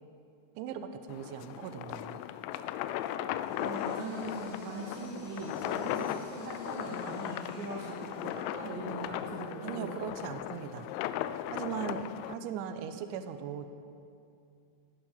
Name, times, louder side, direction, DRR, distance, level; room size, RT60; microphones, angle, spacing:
voice 1, 0.6-2.2 9.6-10.9 11.5-13.7, right 8 dB, 85° right, 9 dB, 2.8 m, -39 dB
sound 1, 1.1-12.3, left 12 dB, 85° left, 2.8 m, -37 dB
Power tool, 2.9-9.0, left 1 dB, 40° left, 5.0 m, -58 dB
voice 2, 3.6-9.9, right 2 dB, 60° right, -5 dB, 3.0 m, -40 dB
18.5 x 9.8 x 5.5 m, 2.6 s
omnidirectional pair, 5.9 m